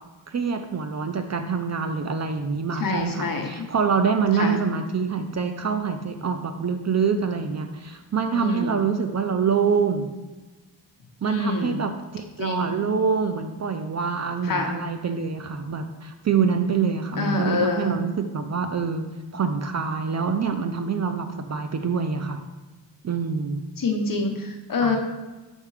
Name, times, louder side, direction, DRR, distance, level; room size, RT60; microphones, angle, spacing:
voice 1, 0.3-10.1 11.2-19.0 19.3-22.4 23.0-23.6 24.8-24.9, right 6 dB, 40° right, 7 dB, 0.5 m, -25 dB
voice 2, 2.8-3.7 4.3-4.6 8.3-8.7 11.2-11.8 12.4-12.7 14.4-14.7 17.2-17.9 23.8-25.0, left 3 dB, 50° left, 3 dB, 0.9 m, -26 dB
6.5 x 3.6 x 4.7 m, 1.2 s
wide cardioid pair, 110°, 44 cm